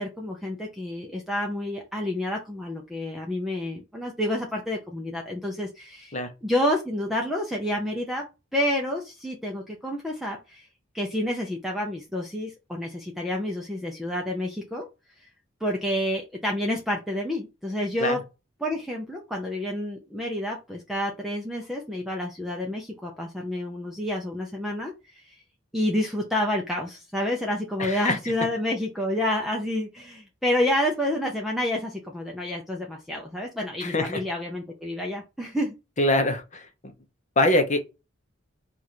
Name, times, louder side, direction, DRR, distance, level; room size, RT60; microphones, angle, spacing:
voice 1, 0.0-6.1 6.4-8.3 8.5-10.7 10.9-14.9 15.2-15.3 15.6-18.2 18.6-25.3 25.7-35.7, left 1 dB, ahead, 0.5 m, -29 dB
voice 2, 27.8-28.2 33.8-34.2 36.0-36.9 37.4-37.8, left 1 dB, 40° left, 0.8 m, -24 dB
3.0 x 2.4 x 4.1 m
head